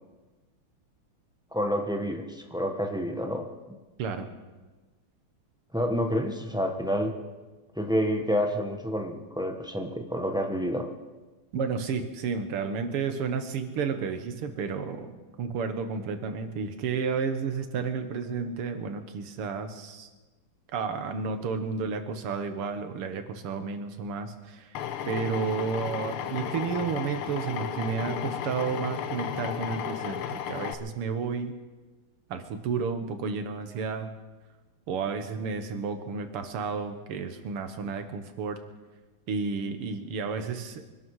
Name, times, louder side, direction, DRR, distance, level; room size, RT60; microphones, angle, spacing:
voice 1, 1.5-3.5 5.7-7.1 7.7-10.9, equal, 5° right, 3 dB, 0.4 m, -28 dB
voice 2, 11.5-20.1 20.7-24.7 25.1-31.5 32.3-34.1 34.9-38.6 39.3-40.8, right 5 dB, 85° right, 8 dB, 2.2 m, -32 dB
Drill, 24.7-30.7, left 9 dB, 80° left, 1.7 m, -34 dB
24.5 x 12.0 x 4.7 m, 1.3 s
omnidirectional pair, 2.4 m